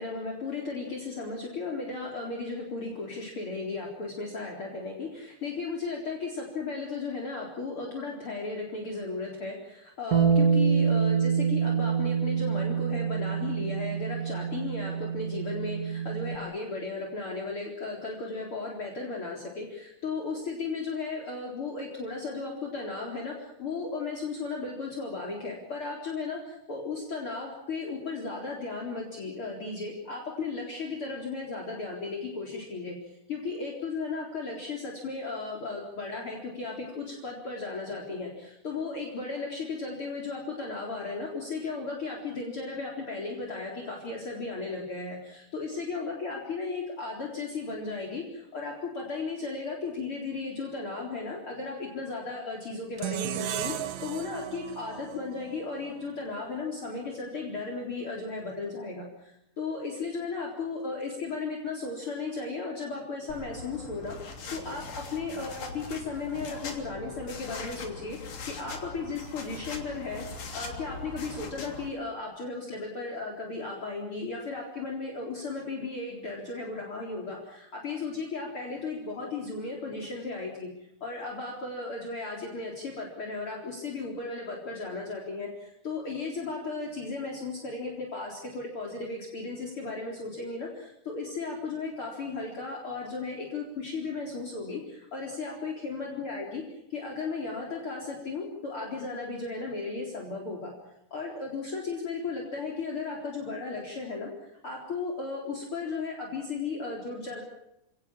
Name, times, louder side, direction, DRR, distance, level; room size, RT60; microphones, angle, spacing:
voice 1, 0.0-33.0 33.3-70.3 70.5-80.7 81.0-96.6 96.9-100.7 101.1-107.4, left 3 dB, 40° left, 1 dB, 4.7 m, -35 dB
Bass guitar, 10.1-16.4, right 6 dB, 50° right, 1.0 m, -26 dB
sound 1, 53.0-56.2, right 13 dB, 65° right, 2.2 m, -36 dB
sound 2, 63.3-71.9, left 4 dB, 75° left, 5.0 m, -41 dB
30.0 x 18.5 x 7.4 m, 0.83 s
omnidirectional pair, 3.8 m